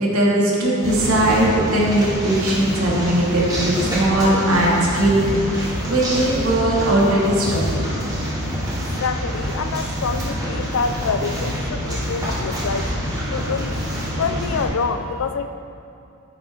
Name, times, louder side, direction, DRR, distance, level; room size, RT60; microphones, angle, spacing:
voice 1, 0.0-8.0, right 1 dB, 80° right, -5 dB, 2.5 m, -19 dB
sound 1, 0.8-14.6, equal, 20° right, 2.8 m, -26 dB
voice 2, 9.0-13.1 13.3-13.7 14.2-15.6, left 5 dB, 70° left, 10 dB, 0.5 m, -26 dB
11.0 x 9.6 x 3.8 m, 2.6 s
head